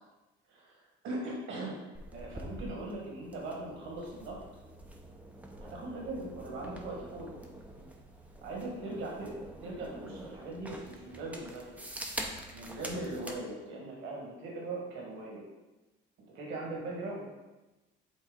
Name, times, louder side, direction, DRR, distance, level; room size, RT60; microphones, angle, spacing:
voice 1, 0.5-1.8 2.1-4.4 5.6-7.4 8.4-9.3 9.6-11.8 12.5-15.5 16.3-17.3, right 2 dB, 75° right, -2 dB, 1.8 m, -40 dB
sound 1, 1.9-13.4, right 1 dB, 5° right, 0.7 m, -45 dB
8.2 x 3.1 x 3.9 m, 1.1 s
cardioid pair, 105°, 20 cm